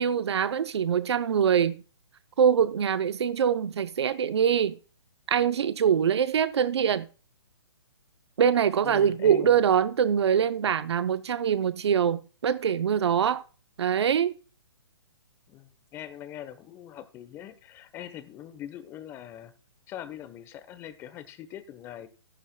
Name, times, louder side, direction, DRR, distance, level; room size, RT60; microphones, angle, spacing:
voice 1, 0.0-1.8 2.4-4.8 5.3-7.1 8.4-13.4 13.8-14.3, right 8 dB, 65° right, 0.7 m, -24 dB
voice 2, 8.8-9.6 15.5-19.5 19.9-22.1, left 11 dB, 15° left, 0.9 m, -42 dB
14.0 x 11.5 x 2.2 m
hypercardioid pair, 145°, 15 cm